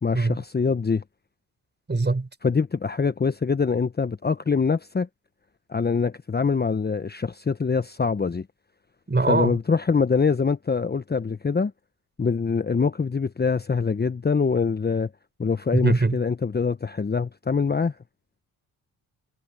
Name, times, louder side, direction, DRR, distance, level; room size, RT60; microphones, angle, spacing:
voice 1, 0.0-1.0 2.4-5.1 5.7-8.5 9.3-11.7 12.2-15.1 15.4-17.9, left 5 dB, 25° left, 1.0 m, -24 dB
voice 2, 1.9-2.3 9.1-9.6 15.7-16.2, right 3 dB, 25° right, 5.5 m, -22 dB
supercardioid pair, 55°, 40 cm